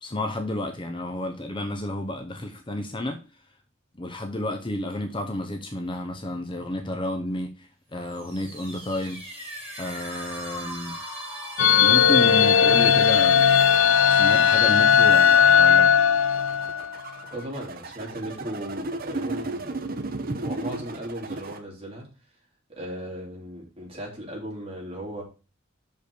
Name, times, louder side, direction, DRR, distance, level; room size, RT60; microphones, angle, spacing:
voice 1, 0.0-3.2 3.9-9.2 9.8-11.0 11.8-13.4 14.1-15.9, left 1 dB, 25° left, 0.8 m, -31 dB
sound 1, 8.0-17.8, right 1 dB, 10° right, 4.1 m, -39 dB
sound 2, 11.6-17.0, left 7 dB, 75° left, 0.6 m, -17 dB
sound 3, 16.3-21.6, right 2 dB, 45° right, 0.9 m, -34 dB
voice 2, 17.3-19.7 20.4-22.1 22.7-25.2, equal, 30° right, 3.2 m, -36 dB
6.1 x 5.2 x 6.7 m
head